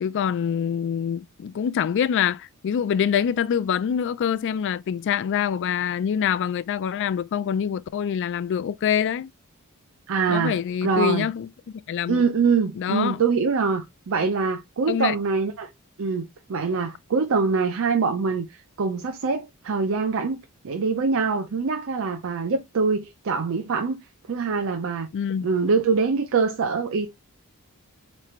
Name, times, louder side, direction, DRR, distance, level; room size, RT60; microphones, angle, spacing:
voice 1, 0.0-9.3 10.3-11.5 11.9-12.2 12.8-13.2 14.2-14.3 14.9-15.2 25.1-25.5, left 8 dB, 55° left, 0.3 m, -25 dB
voice 2, 10.1-11.3 12.1-15.7 16.0-24.0 24.3-25.1 25.4-27.1, right 5 dB, 65° right, 0.5 m, -24 dB
4.3 x 3.1 x 2.4 m
head